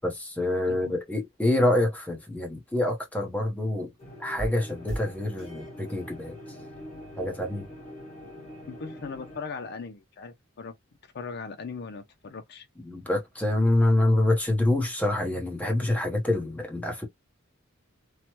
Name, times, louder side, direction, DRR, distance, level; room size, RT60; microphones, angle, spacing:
voice 1, 0.0-3.9 4.2-6.4 7.2-7.7 12.8-17.0, left 1 dB, 5° left, 0.8 m, -26 dB
sound 1, 4.0-9.4, equal, 30° left, 1.6 m, -41 dB
voice 2, 8.7-10.7 11.0-12.7, left 5 dB, 50° left, 0.4 m, -39 dB
3.1 x 2.0 x 2.8 m
head